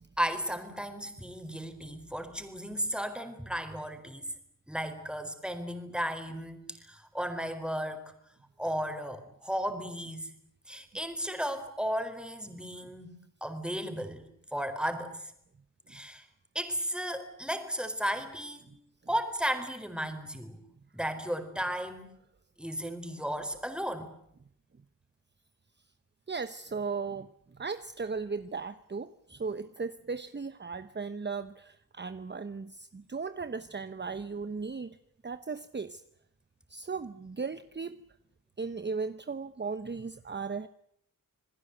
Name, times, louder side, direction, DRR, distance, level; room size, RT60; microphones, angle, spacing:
voice 1, 0.2-4.3 4.7-8.0 8.6-10.3 10.7-13.1 13.4-14.3 14.5-15.3 15.9-16.2 16.5-18.7 19.1-20.6 20.9-22.1 22.6-24.1, equal, 5° right, 7 dB, 4.4 m, -34 dB
voice 2, 26.3-35.0 35.2-36.0 36.7-38.0 38.6-40.7, right 4 dB, 30° right, 12 dB, 1.0 m, -37 dB
28.0 x 21.0 x 8.0 m, 0.71 s
wide cardioid pair, 120°, 34 cm